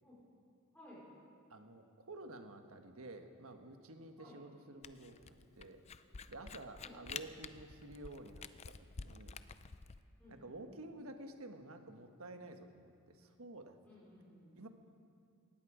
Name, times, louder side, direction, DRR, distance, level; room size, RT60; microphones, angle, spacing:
voice 1, 0.7-1.0 4.2-4.4 6.8-7.0 10.2-10.6 13.8-14.5, left 1 dB, 5° left, -8 dB, 4.4 m, -58 dB
voice 2, 1.5-5.8 6.3-9.4 10.3-13.8 14.6-14.7, right 2 dB, 80° right, 6 dB, 1.4 m, -51 dB
Camera, 4.8-10.0, left 5 dB, 30° left, 0.5 m, -49 dB
19.0 x 15.0 x 5.0 m, 2.4 s
head